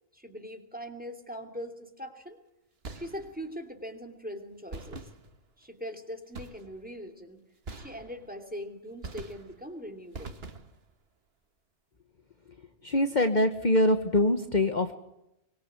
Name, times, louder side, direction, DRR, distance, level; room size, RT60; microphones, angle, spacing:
voice 1, 0.1-2.4 2.9-5.1 5.6-7.4 7.7-10.4, equal, 5° right, 6 dB, 3.0 m, -41 dB
sound 1, 2.8-3.6 4.7-5.6 6.3-7.0 7.7-8.5 9.0-9.7 10.1-10.9, right 3 dB, 55° right, 1.7 m, -44 dB
voice 2, 12.8-14.9, left 1 dB, 40° left, 7 dB, 1.3 m, -24 dB
24.5 x 22.0 x 8.2 m, 0.86 s
omnidirectional pair, 1.2 m